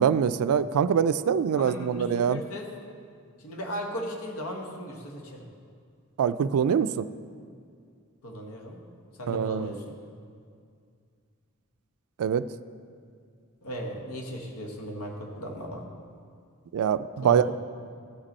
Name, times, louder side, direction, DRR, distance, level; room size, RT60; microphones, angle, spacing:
voice 1, 0.0-2.4 6.2-7.1 9.3-9.7 12.2-12.4 16.7-17.5, right 7 dB, 85° right, 14 dB, 0.3 m, -24 dB
voice 2, 1.6-2.7 3.4-5.5 8.2-8.8 9.2-9.8 13.6-15.9 17.2-17.5, equal, 85° left, 2 dB, 1.2 m, -36 dB
14.5 x 5.2 x 4.2 m, 2.2 s
head